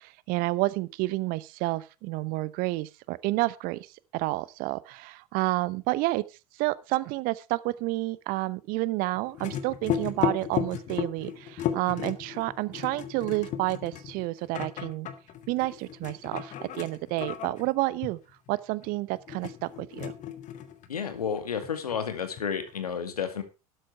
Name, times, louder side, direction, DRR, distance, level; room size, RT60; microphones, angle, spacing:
voice 1, 0.0-6.2 6.6-15.1 15.5-18.2 18.5-20.1, right 20 dB, 50° right, 0.8 m, -30 dB
sound 1, 9.1-21.1 21.4-22.8, left 9 dB, 40° left, 1.7 m, -35 dB
voice 2, 20.9-23.4, left 7 dB, 80° left, 2.2 m, -31 dB
12.5 x 9.1 x 4.5 m
figure-of-eight pair, 80°, 19 cm